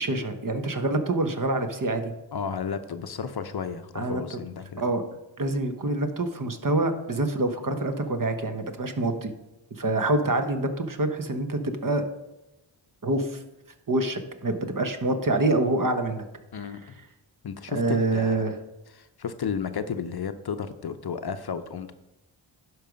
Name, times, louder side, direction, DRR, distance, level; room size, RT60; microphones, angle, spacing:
voice 1, 0.0-2.1 3.9-4.2 4.8-5.0 5.4-9.3 9.8-12.0 13.0-13.4 13.9-16.3 16.6-16.7 17.7-18.6, right 2 dB, 40° right, 7 dB, 1.1 m, -26 dB
voice 2, 2.3-4.8 16.5-17.0 17.4-18.5 19.0-21.9, left 6 dB, 50° left, 10 dB, 0.7 m, -33 dB
11.5 x 4.8 x 5.2 m, 0.98 s
cardioid pair, 60°, 49 cm